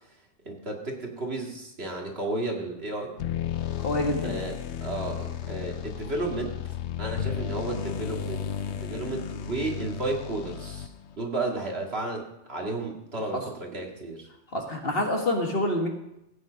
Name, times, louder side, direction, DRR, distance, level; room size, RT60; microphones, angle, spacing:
voice 1, 0.5-3.1 4.2-4.5 4.8-6.6 7.0-10.9 11.2-14.3, right 2 dB, 55° right, 0 dB, 2.3 m, -33 dB
sound 1, 3.2-11.2, left 9 dB, 65° left, 0.9 m, -33 dB
voice 2, 3.8-4.4 13.3-13.4 14.5-15.9, left 1 dB, 50° left, 2 dB, 2.0 m, -27 dB
15.5 x 9.0 x 5.1 m, 0.84 s
omnidirectional pair, 1.3 m